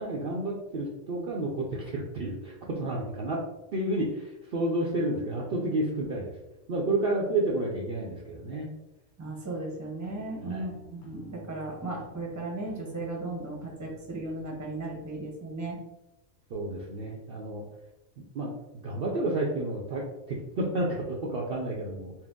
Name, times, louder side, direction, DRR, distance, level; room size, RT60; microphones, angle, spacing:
voice 1, 0.0-3.4 3.7-6.3 6.7-8.7 10.4-10.7 16.5-17.6 18.3-22.1, right 1 dB, 55° right, -2 dB, 0.7 m, -31 dB
voice 2, 9.2-15.8, right 2 dB, 15° right, -1 dB, 0.7 m, -36 dB
sound 1, 10.0-15.2, left 2 dB, 70° left, 1.1 m, -51 dB
4.4 x 2.1 x 3.6 m, 0.96 s
omnidirectional pair, 1.4 m